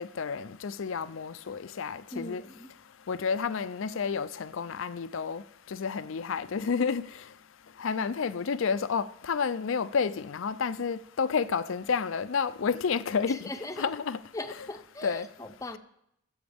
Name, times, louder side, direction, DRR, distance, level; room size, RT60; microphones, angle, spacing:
voice 1, 0.0-2.4 3.1-5.4 5.7-7.0 7.8-13.4 13.8-14.2 14.6-14.7 15.0-15.3, left 5 dB, 60° left, 0.4 m, -30 dB
voice 2, 2.1-2.7 13.3-13.9 14.3-15.8, left 2 dB, 15° left, 0.6 m, -39 dB
19.0 x 7.9 x 3.5 m
head